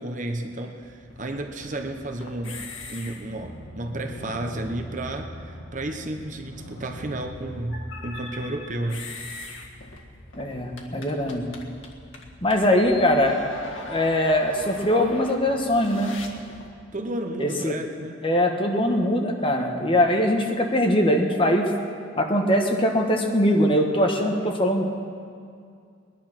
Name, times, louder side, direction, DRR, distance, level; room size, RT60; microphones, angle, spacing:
voice 1, 0.0-2.6 2.9-9.1 16.9-18.2, right 1 dB, 40° right, 4 dB, 1.0 m, -32 dB
sound 1, 0.8-16.7, left 2 dB, 80° left, 1.7 m, -41 dB
voice 2, 10.4-11.4 12.4-13.4 13.9-16.2 17.4-17.7 18.2-21.7 22.2-24.8, left 1 dB, 25° left, 2 dB, 1.3 m, -22 dB
20.5 x 10.5 x 6.1 m, 2.3 s
head